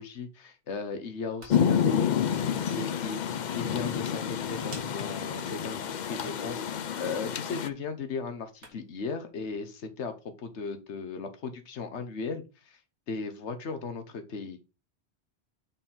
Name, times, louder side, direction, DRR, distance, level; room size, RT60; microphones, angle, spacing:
voice 1, 0.0-12.8 13.1-14.6, left 4 dB, 85° left, 8 dB, 1.3 m, -37 dB
sound 1, 1.1-9.1, right 2 dB, 75° right, 2.6 m, -56 dB
Rain, 1.5-7.7, left 8 dB, 50° left, 0.6 m, -29 dB
8.7 x 4.3 x 3.8 m, 0.30 s
omnidirectional pair, 1.1 m